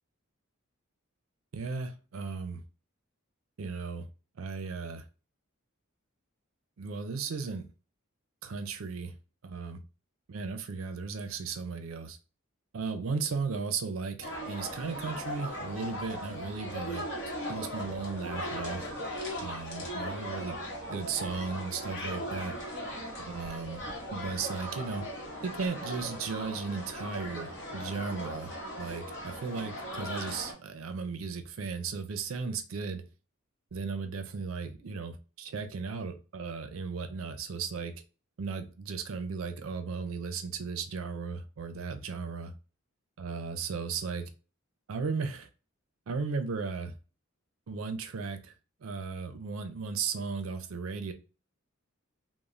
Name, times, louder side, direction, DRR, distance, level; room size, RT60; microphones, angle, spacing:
voice 1, 1.5-2.6 3.6-4.1 4.4-5.0 6.8-7.7 8.4-9.1 9.4-9.8 10.3-12.2 12.7-17.1 17.5-18.9 19.4-20.6 20.9-22.6 23.2-23.8 24.1-25.0 25.4-33.0 33.7-37.9 38.4-42.5 43.2-44.2 44.9-45.5 46.1-46.9 47.7-48.5 48.8-51.1, right 5 dB, 70° right, 0.4 m, -36 dB
sound 1, 14.2-30.5, equal, 55° left, 0.8 m, -38 dB
3.0 x 2.0 x 2.4 m
head